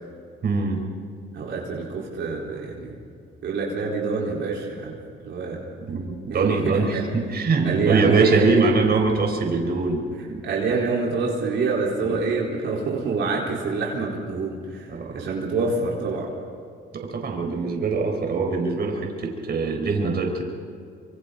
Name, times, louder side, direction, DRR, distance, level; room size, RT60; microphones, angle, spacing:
voice 1, 0.4-0.8 5.8-10.4 12.0-12.2 14.9-15.1 16.9-20.4, right 4 dB, 55° right, 1 dB, 4.5 m, -23 dB
voice 2, 1.3-3.0 3.4-5.0 5.2-5.6 6.3-7.1 7.6-8.7 10.4-16.3, right 4 dB, 70° right, -3 dB, 4.3 m, -26 dB
26.5 x 25.5 x 4.1 m, 2.3 s
cardioid pair, 90°, 20 cm